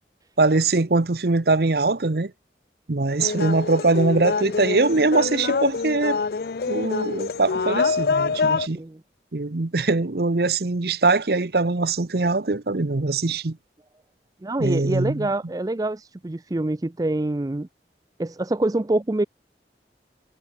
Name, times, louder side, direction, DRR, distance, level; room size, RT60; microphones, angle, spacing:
voice 1, 0.4-2.3 2.9-6.2 6.7-8.8 9.3-13.6 14.6-15.3, right 3 dB, 60° right, 0.9 m, -22 dB
sound 1, 3.2-8.7, left 4 dB, 55° left, 0.5 m, -25 dB
voice 2, 14.4-17.7 18.2-19.2, right 2 dB, 20° right, 0.4 m, -25 dB
head